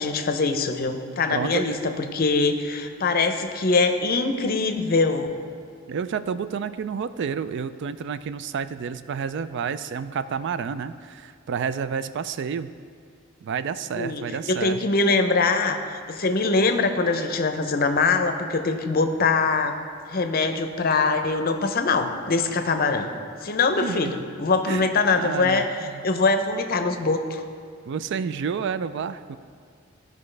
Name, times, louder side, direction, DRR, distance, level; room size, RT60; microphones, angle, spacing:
voice 1, 0.0-5.3 14.0-14.2 14.5-15.8 16.1-19.8 20.1-23.1 23.4-25.7 26.0-27.4, left 3 dB, 45° left, 7 dB, 0.6 m, -23 dB
voice 2, 1.3-1.8 5.9-12.7 13.4-14.8 23.8-24.1 24.7-26.0 27.9-29.4, right 6 dB, 60° right, 13 dB, 0.3 m, -30 dB
14.5 x 5.2 x 3.3 m, 2.1 s
head